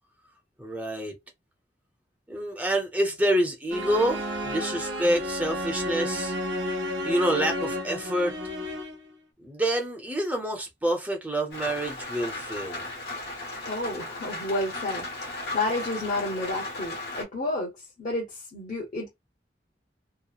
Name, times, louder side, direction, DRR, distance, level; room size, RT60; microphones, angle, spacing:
voice 1, 0.6-1.1 2.3-6.3 7.0-8.4 9.4-12.9, right 1 dB, 10° right, 0.7 m, -27 dB
sound 1, 3.7-9.1, left 1 dB, 85° right, 0.6 m, -32 dB
Rain, 11.5-17.2, left 2 dB, 60° left, 1.1 m, -36 dB
voice 2, 13.7-17.7 18.0-19.1, left 2 dB, 45° left, 0.9 m, -31 dB
2.9 x 2.0 x 2.4 m
head